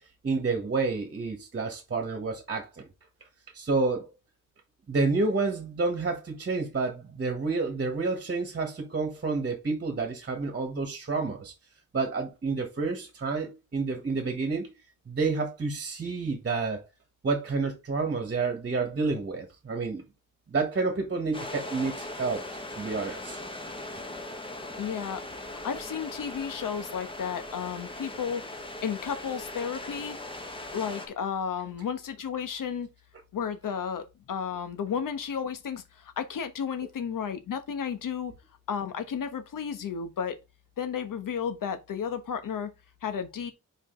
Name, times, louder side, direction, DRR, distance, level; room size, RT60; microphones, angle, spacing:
voice 1, 0.2-2.8 3.5-4.1 4.9-11.5 11.9-14.7 15.1-16.8 17.2-20.0 20.5-22.5 22.8-23.4, right 3 dB, 35° right, 1.3 m, -29 dB
sound 1, 21.3-31.1, left 1 dB, 15° left, 1.1 m, -39 dB
voice 2, 24.8-28.4 28.8-30.2 30.7-32.9 33.3-38.3 38.7-40.4 40.8-42.7 43.0-43.5, left 7 dB, 85° left, 1.2 m, -33 dB
5.0 x 5.0 x 3.7 m
wide cardioid pair, 170°, 32 cm